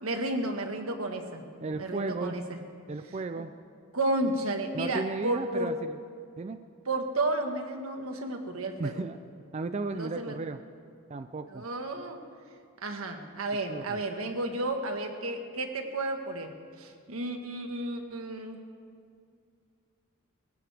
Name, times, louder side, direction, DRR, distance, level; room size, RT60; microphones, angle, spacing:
voice 1, 0.0-1.4 1.8-2.6 3.3-3.4 3.9-5.7 6.9-9.1 9.9-10.4 11.5-12.2 12.8-16.5 16.8-18.6, right 2 dB, 85° right, 5 dB, 1.5 m, -32 dB
voice 2, 1.6-2.4 2.9-3.5 4.7-6.0 6.4-6.6 8.8-9.2 9.5-10.6 11.1-11.6 13.7-14.0, right 3 dB, 30° right, 9 dB, 0.4 m, -34 dB
21.5 x 15.5 x 3.5 m, 2.2 s
head